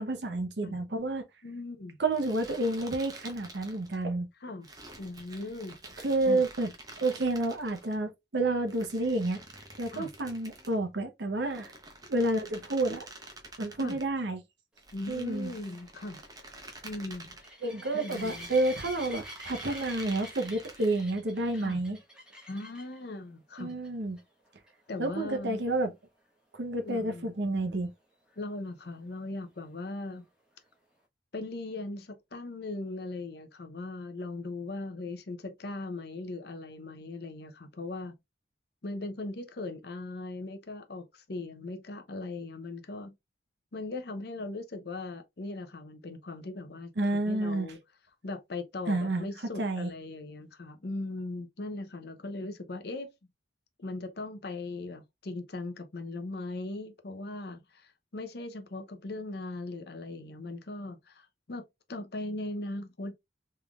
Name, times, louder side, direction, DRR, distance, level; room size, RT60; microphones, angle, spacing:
voice 1, 0.0-1.2 2.0-4.3 6.0-6.7 7.0-9.4 9.8-11.7 12.1-13.1 13.6-14.4 15.1-15.5 17.6-22.0 23.6-24.2 25.0-25.9 26.5-27.9 47.0-47.7 48.9-49.3 49.6-49.9, right 2 dB, 65° right, 0.8 m, -30 dB
voice 2, 1.4-2.0 4.4-4.7 5.0-5.8 6.3-6.4 9.9-10.1 13.8-14.0 14.9-16.2 16.8-17.4 17.9-18.5 21.6-21.8 22.5-23.7 24.9-25.6 26.8-27.3 28.4-30.2 31.3-38.2 38.8-43.1 43.7-47.8 48.2-53.1 53.8-63.1, left 2 dB, 55° left, 0.6 m, -39 dB
sound 1, 2.1-4.0 4.6-8.0 8.7-10.8 11.4-14.1 14.8-17.5 18.1-21.1, right 2 dB, 20° right, 0.7 m, -48 dB
sound 2, 15.1-23.0 23.6-23.9 24.2-24.3 24.7-24.8 28.3-28.4, equal, 5° right, 1.1 m, -47 dB
3.6 x 3.3 x 2.3 m
head